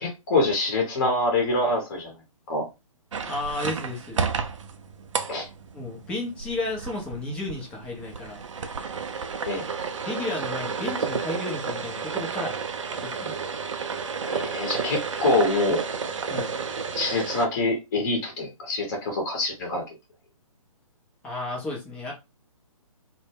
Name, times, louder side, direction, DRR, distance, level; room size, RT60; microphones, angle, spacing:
voice 1, 0.0-2.1 2.5-2.6 5.3-5.4 9.4-9.7 14.2-15.8 16.9-19.8, left 2 dB, 35° left, 2 dB, 0.7 m, -25 dB
sound 1, 3.1-17.5, right 5 dB, 60° right, 0.4 m, -32 dB
voice 2, 3.3-4.2 5.7-8.4 10.0-12.6 13.0-13.3 16.3-16.5 21.2-22.1, left 2 dB, 5° left, -2 dB, 0.4 m, -33 dB
2.1 x 2.0 x 3.2 m, 0.25 s
figure-of-eight pair, 135°, 18 cm